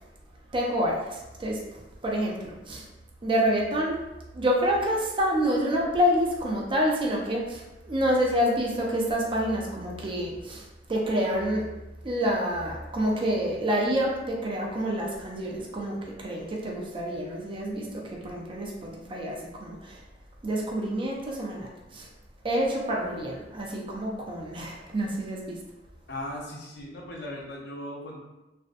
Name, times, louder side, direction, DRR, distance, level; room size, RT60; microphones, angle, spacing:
voice 1, 0.5-2.9 3.2-4.0 4.3-11.6 12.0-20.0 20.4-22.1 22.4-25.6, equal, 30° right, -2 dB, 0.4 m, -28 dB
voice 2, 26.1-28.2, left 1 dB, 65° left, -2 dB, 0.6 m, -38 dB
2.5 x 2.1 x 2.5 m, 1.0 s
head